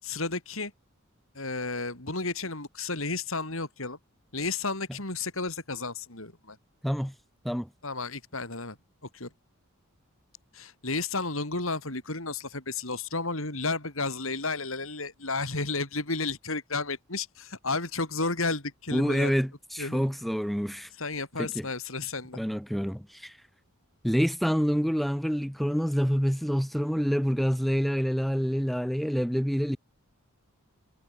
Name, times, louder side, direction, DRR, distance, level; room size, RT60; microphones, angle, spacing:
voice 1, 0.0-0.7 1.4-4.0 4.3-6.6 7.8-8.8 9.1-9.3 10.5-19.3 19.8-20.1 21.0-22.4, left 3 dB, 65° left, 5.4 m, -32 dB
voice 2, 18.9-20.9 21.4-21.7 22.3-23.3 24.0-29.8, equal, ahead, 1.2 m, -27 dB
head